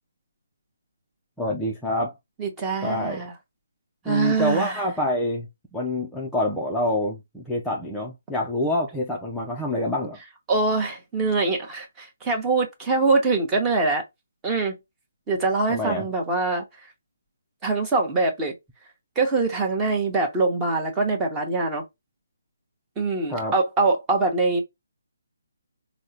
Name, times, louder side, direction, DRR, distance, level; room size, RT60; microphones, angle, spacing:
voice 1, 1.4-2.1 2.8-3.2 4.0-10.2 15.7-16.1 23.3-23.5, left 1 dB, 5° left, 0.4 m, -27 dB
voice 2, 2.4-3.3 4.1-4.8 10.5-14.0 14.4-14.8 15.3-16.6 17.6-18.5 19.2-21.8 23.0-24.6, right 3 dB, 15° right, 0.9 m, -23 dB
3.5 x 2.0 x 2.7 m
hypercardioid pair, 160°, 0 cm